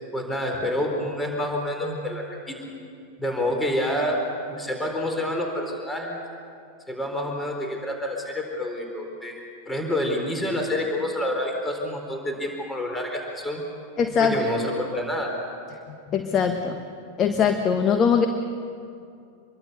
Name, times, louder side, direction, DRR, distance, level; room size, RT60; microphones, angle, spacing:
voice 1, 0.1-2.6 3.2-4.2 4.5-6.2 6.9-13.6 14.2-15.3, left 1 dB, 10° left, 1 dB, 4.2 m, -28 dB
voice 2, 14.0-14.4 15.9-16.8 17.2-18.3, left 6 dB, 30° left, 6 dB, 1.4 m, -22 dB
27.0 x 22.5 x 6.9 m, 2.5 s
figure-of-eight pair, 90°, 0 cm